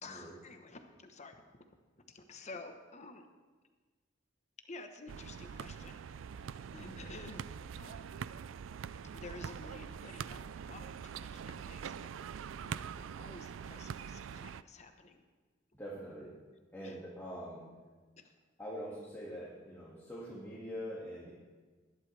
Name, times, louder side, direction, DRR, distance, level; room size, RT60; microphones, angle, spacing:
voice 1, 0.0-1.6 2.0-3.3 4.6-7.5 7.8-8.1 9.1-15.2 16.8-17.0 18.2-18.3, left 3 dB, 35° left, 6 dB, 1.1 m, -51 dB
sound 1, 5.1-14.6, right 7 dB, 75° right, 0.3 m, -44 dB
voice 2, 15.8-16.3 16.7-17.6 18.6-21.3, equal, 10° left, -7 dB, 2.2 m, -44 dB
20.0 x 11.0 x 3.4 m, 1.4 s
head